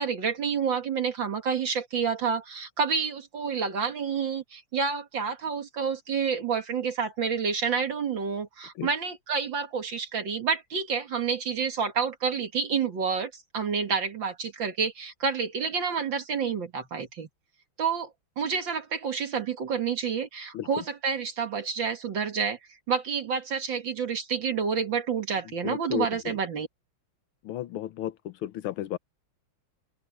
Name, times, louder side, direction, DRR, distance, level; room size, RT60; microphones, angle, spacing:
voice 1, 0.0-17.3 17.8-22.6 22.9-26.7, right 6 dB, 65° right, 2.4 m, -29 dB
voice 2, 25.6-26.3 27.4-29.0, left 12 dB, 80° left, 1.7 m, -33 dB
open air
omnidirectional pair, 2.3 m